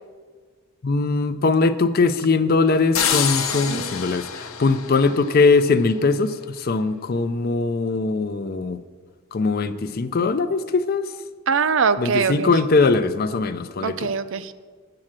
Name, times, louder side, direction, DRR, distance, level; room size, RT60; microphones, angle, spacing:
voice 1, 0.8-8.8 9.3-11.1 12.0-14.1, left 3 dB, 40° left, 12 dB, 0.4 m, -21 dB
sound 1, 2.9-5.8, left 8 dB, 65° left, 0.7 m, -26 dB
voice 2, 3.5-3.9 11.5-12.5 13.8-14.5, right 5 dB, 55° right, 12 dB, 0.5 m, -23 dB
7.7 x 7.4 x 7.4 m, 1.5 s
head